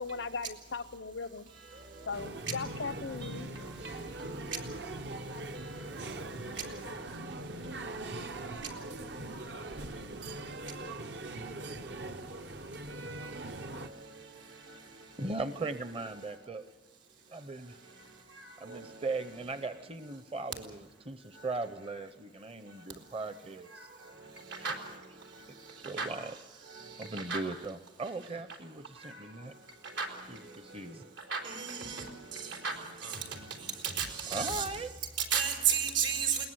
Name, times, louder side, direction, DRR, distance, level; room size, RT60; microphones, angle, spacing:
voice 1, 0.0-1.5 2.1-3.6, left 4 dB, 85° left, 15 dB, 0.8 m, -38 dB
sound 1, 2.1-13.9, right 2 dB, 70° right, 1.0 m, -41 dB
voice 2, 15.2-16.6 17.3-17.8 18.6-23.9 25.8-29.5 30.3-31.0 34.3-34.9, right 3 dB, 30° right, 11 dB, 0.7 m, -39 dB
voice 3, 31.3-32.0 32.6-32.7 34.0-34.6 35.3-36.4, right 7 dB, 85° right, 3 dB, 4.2 m, -30 dB
21.5 x 19.5 x 8.0 m, 1.2 s
head